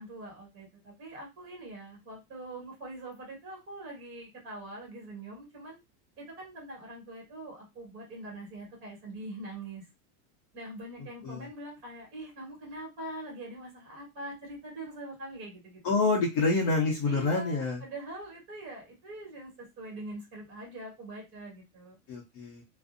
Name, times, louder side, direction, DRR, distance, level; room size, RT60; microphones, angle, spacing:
voice 1, 0.0-5.8 6.2-9.8 10.5-15.8 17.1-21.9, right 1 dB, 30° right, -2 dB, 1.3 m, -43 dB
voice 2, 15.8-17.8 22.1-22.6, left 3 dB, 40° left, -2 dB, 0.7 m, -27 dB
2.5 x 2.0 x 2.4 m, 0.23 s
supercardioid pair, 150°, 44 cm